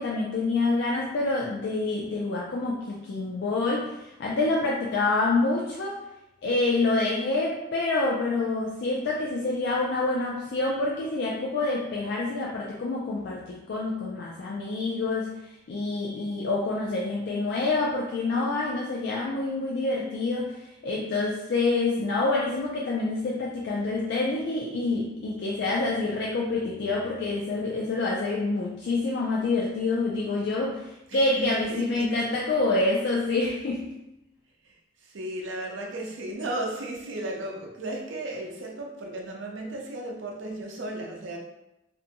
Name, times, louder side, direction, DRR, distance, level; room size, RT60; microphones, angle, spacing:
voice 1, 0.0-6.0 6.4-15.3 15.7-20.6 20.8-33.9, left 3 dB, 60° left, -3 dB, 0.4 m, -27 dB
voice 2, 31.1-32.3 34.6-34.8 35.0-41.4, right 1 dB, 80° right, 0 dB, 0.5 m, -35 dB
2.6 x 2.2 x 2.7 m, 0.91 s
head